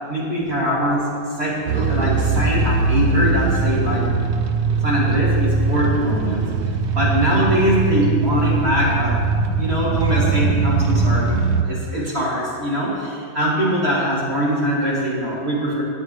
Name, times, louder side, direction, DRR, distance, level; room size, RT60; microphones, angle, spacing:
voice 1, 0.1-1.1 1.4-4.1 4.8-6.4 7.0-9.2 9.6-11.3 11.7-12.9 13.3-15.8, equal, 30° right, -6 dB, 2.9 m, -22 dB
sound 1, 1.7-11.6, right 4 dB, 65° right, 1.0 m, -20 dB
18.5 x 9.5 x 3.3 m, 2.2 s
omnidirectional pair, 2.4 m